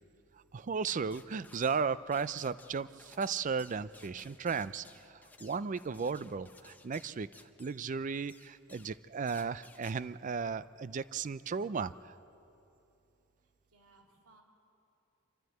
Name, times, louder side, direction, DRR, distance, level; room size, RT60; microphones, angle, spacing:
voice 1, 0.5-7.3 7.6-12.1, right 5 dB, 35° right, 16 dB, 0.4 m, -35 dB
sound 1, 1.1-1.9 2.1-7.8 8.3-8.9 9.3-10.0, left 3 dB, 10° left, 0.7 m, -57 dB
voice 2, 13.4-14.4, right 3 dB, 80° right, 0 dB, 2.9 m, -64 dB
26.0 x 13.0 x 7.9 m, 2.8 s
head